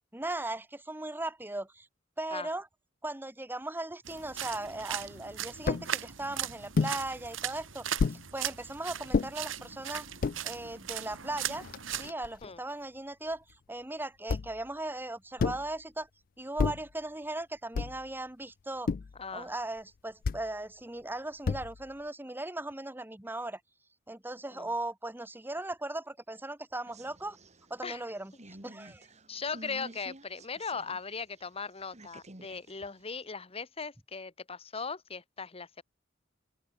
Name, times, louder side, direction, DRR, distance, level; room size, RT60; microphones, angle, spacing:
voice 1, 0.1-1.9 2.2-2.7 3.0-10.1 10.4-11.7 11.9-16.1 16.4-18.9 19.3-23.6 24.1-27.4 27.7-29.1, right 2 dB, 10° right, 1.4 m, -38 dB
sound 1, 4.0-12.1, right 10 dB, 80° right, 2.5 m, -38 dB
sound 2, 5.7-5.9 6.8-7.0 8.0-8.2 9.1-9.3 10.0-10.4 11.1-11.2 11.5-12.5 14.3-14.7 15.4-15.7 16.6-16.9 17.8-18.1 18.9-19.2 20.2-20.5 21.4-21.9, left 4 dB, 45° left, 0.4 m, -30 dB
voice 2, 19.2-19.5 24.5-24.7 27.8-28.0 29.3-35.8, left 5 dB, 30° left, 1.2 m, -39 dB
sound 3, 26.9-31.0 31.4-33.2, right 1 dB, 35° right, 3.8 m, -51 dB
open air
head